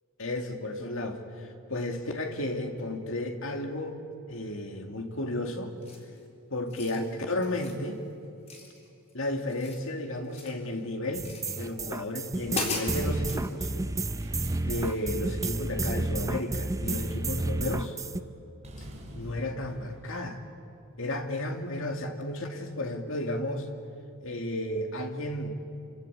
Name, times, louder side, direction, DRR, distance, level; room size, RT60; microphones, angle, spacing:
voice 1, 0.2-4.0 4.3-5.7 6.5-8.0 9.1-11.3 11.6-13.7 14.6-18.0 19.1-20.4 21.0-23.7 24.2-25.5, left 1 dB, 65° left, 4 dB, 2.4 m, -33 dB
sound 1, 5.8-6.2 6.6-7.0 7.4-7.8 8.5-9.1 9.4-10.6 11.2-11.6 12.1-12.2 12.5-13.4, left 3 dB, 30° left, 3.9 m, -37 dB
sound 2, 11.1-18.2, right 2 dB, 15° right, 0.6 m, -31 dB
sound 3, 14.2-15.2 16.9-17.3 17.5-17.8 18.6-21.0, equal, 30° right, 5.4 m, -48 dB
27.0 x 26.0 x 8.2 m, 2.8 s
head